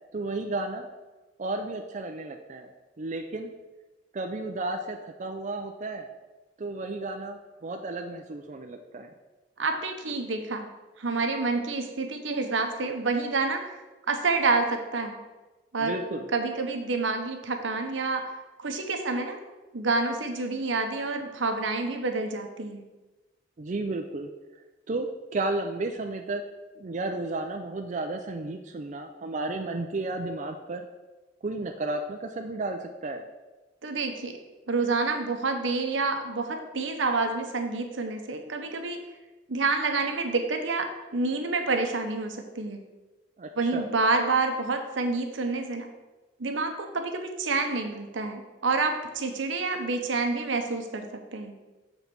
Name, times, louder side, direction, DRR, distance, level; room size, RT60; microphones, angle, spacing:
voice 1, 0.1-0.9 1.4-2.7 3.0-3.5 4.1-6.1 6.6-9.1 15.8-16.3 23.6-24.3 24.9-26.4 26.8-30.8 31.4-33.2 43.4-43.9, right 2 dB, 40° right, 4 dB, 0.4 m, -33 dB
voice 2, 9.6-10.7 11.0-13.7 14.1-15.2 15.7-16.0 16.3-18.3 18.6-19.4 19.7-22.9 33.8-34.4 34.7-39.0 39.5-42.8 43.6-45.9 46.4-51.6, right 3 dB, 80° right, 5 dB, 0.9 m, -28 dB
7.0 x 4.0 x 5.9 m, 1.1 s
head